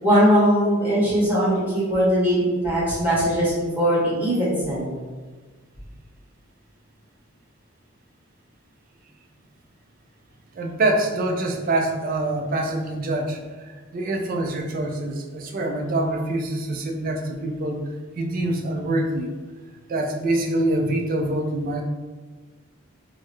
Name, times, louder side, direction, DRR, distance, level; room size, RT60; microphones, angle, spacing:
voice 1, 0.0-4.9, equal, 10° right, -10 dB, 1.3 m, -20 dB
voice 2, 10.5-17.8 18.2-19.3 19.9-21.8, right 1 dB, 40° right, 3 dB, 0.4 m, -25 dB
3.7 x 2.1 x 3.1 m, 1.4 s
head